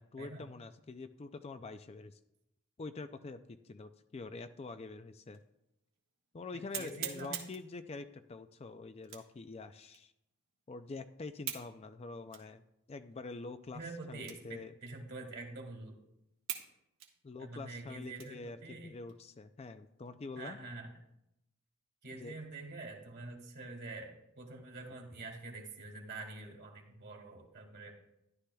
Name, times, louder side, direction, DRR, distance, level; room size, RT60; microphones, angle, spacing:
voice 1, 0.0-2.2 2.8-5.4 6.3-10.1 10.7-12.6 12.9-13.8 14.1-14.7 17.2-20.6 22.1-22.3, left 3 dB, 30° left, 10 dB, 0.3 m, -46 dB
sound 1, 5.3-5.4 6.0-6.1 6.7-7.7 9.0-9.4 9.9-10.0 11.4-11.7 12.3-12.5 13.1-13.2 14.2-14.6 14.9-15.0 15.6-15.7 16.5-16.7 17.0-18.5 19.0-19.1 19.6-20.1, right 9 dB, 70° right, 1.5 m, -43 dB
voice 2, 6.8-7.4 13.7-16.0 17.4-19.0 20.4-20.9 22.0-27.9, right 2 dB, 50° right, 1 dB, 2.0 m, -46 dB
13.0 x 11.5 x 2.3 m, 0.84 s
head